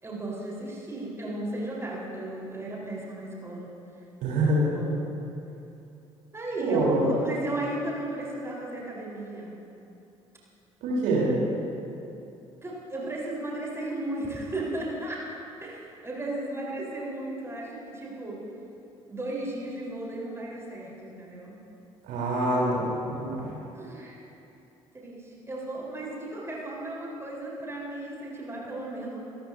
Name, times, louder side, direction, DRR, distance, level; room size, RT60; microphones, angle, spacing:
voice 1, 0.0-3.7 4.4-5.0 6.3-9.5 12.6-15.2 15.6-18.4 19.1-21.6 23.7-24.2 24.9-29.2, right 1 dB, 15° right, -5 dB, 4.1 m, -35 dB
voice 2, 4.2-4.7 6.6-7.1 10.8-11.3 22.1-23.5, right 1 dB, 55° right, -5 dB, 3.6 m, -25 dB
25.0 x 14.5 x 2.7 m, 2.8 s
figure-of-eight pair, 50°, 16 cm